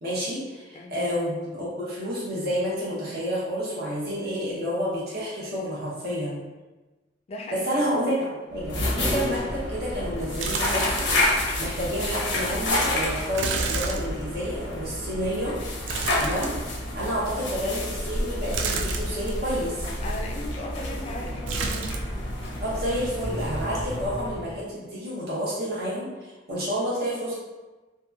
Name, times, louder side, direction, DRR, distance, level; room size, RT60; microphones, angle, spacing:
voice 1, 0.0-6.4 7.5-11.1 11.6-15.5 16.2-16.5 16.9-19.9 22.6-27.3, equal, 55° right, -7 dB, 0.7 m, -29 dB
voice 2, 7.3-7.8 17.0-17.1 20.0-22.0, left 1 dB, 35° left, 1 dB, 0.3 m, -37 dB
sound 1, 8.5-24.7, left 1 dB, 80° left, 0.6 m, -29 dB
sound 2, 10.4-11.3 11.7-11.8 13.3-14.6 15.9-17.0 18.5-19.4 21.5-22.2 22.4-23.1 23.4-23.5, right 4 dB, 90° right, 0.3 m, -31 dB
2.8 x 2.2 x 2.3 m, 1.2 s
head